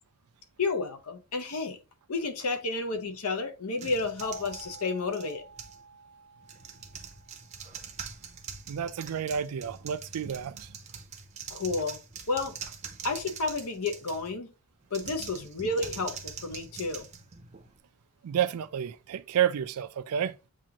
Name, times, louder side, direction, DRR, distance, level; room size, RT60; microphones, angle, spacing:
voice 1, 0.6-1.8 2.1-5.4 11.5-12.0 12.3-12.6 13.0-14.5 14.9-17.1, left 3 dB, 80° left, 0.8 m, -31 dB
sound 1, 3.8-5.8 6.4-14.4 14.9-17.8, right 6 dB, 30° right, 0.6 m, -44 dB
sound 2, 4.2-8.9, right 3 dB, 40° left, 0.6 m, -51 dB
voice 2, 8.7-10.8 15.0-15.1 18.2-20.4, right 9 dB, 85° right, 0.4 m, -30 dB
7.4 x 2.5 x 2.8 m
head